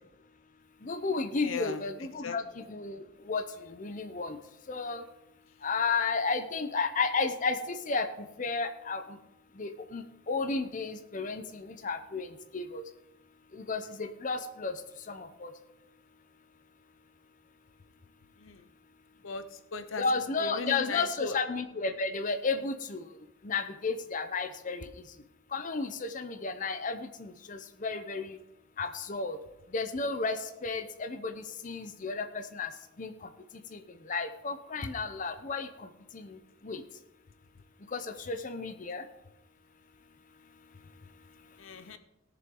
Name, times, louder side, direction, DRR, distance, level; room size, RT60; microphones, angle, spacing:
voice 1, 0.8-2.4 2.7-3.4 3.8-4.4 4.7-5.0 5.6-8.1 8.4-9.0 9.6-12.3 12.5-12.8 13.7-14.7 15.1-15.5 20.0-23.1 23.4-24.8 25.5-28.4 28.8-29.4 29.7-32.7 33.0-33.1 33.7-33.8 34.1-35.7 36.1-36.3 36.6-36.8 37.9-39.0, left 4 dB, 40° left, 8 dB, 0.7 m, -32 dB
voice 2, 1.4-1.9 2.2-2.4 18.4-18.7 19.2-21.4 41.6-42.0, left 4 dB, 85° left, 11 dB, 0.7 m, -38 dB
18.0 x 6.9 x 3.7 m, 0.91 s
head